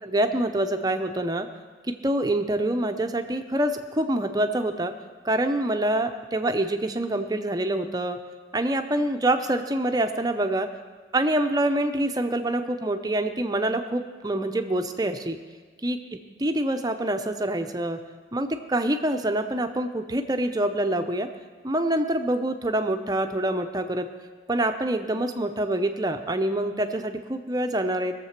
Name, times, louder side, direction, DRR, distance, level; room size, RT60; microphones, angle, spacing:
voice 1, 0.0-1.5 1.9-4.9 5.2-8.2 8.5-10.7 11.1-15.4 15.8-16.0 16.4-18.0 18.3-21.3 21.6-24.1 24.5-28.1, right 1 dB, 20° right, 7 dB, 0.6 m, -26 dB
19.5 x 7.4 x 5.9 m, 1.5 s
head